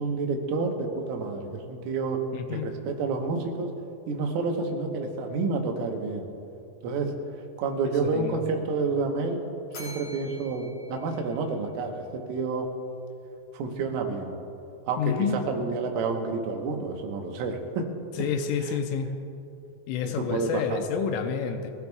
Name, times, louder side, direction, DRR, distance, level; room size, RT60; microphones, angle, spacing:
voice 1, 0.0-2.2 2.5-3.7 4.1-6.3 6.8-7.2 7.6-9.4 9.7-12.7 13.5-14.3 14.9-15.2 15.5-17.9 18.6-18.8 20.2-20.8, right 4 dB, 80° right, 2 dB, 3.7 m, -29 dB
voice 2, 2.3-2.7 8.0-8.4 15.0-15.4 18.2-19.1 19.9-21.7, left 7 dB, 85° left, 5 dB, 3.3 m, -29 dB
Bell, 9.7-12.0, left 1 dB, 45° left, 4.5 m, -46 dB
23.0 x 16.0 x 2.4 m, 2.6 s
omnidirectional pair, 5.7 m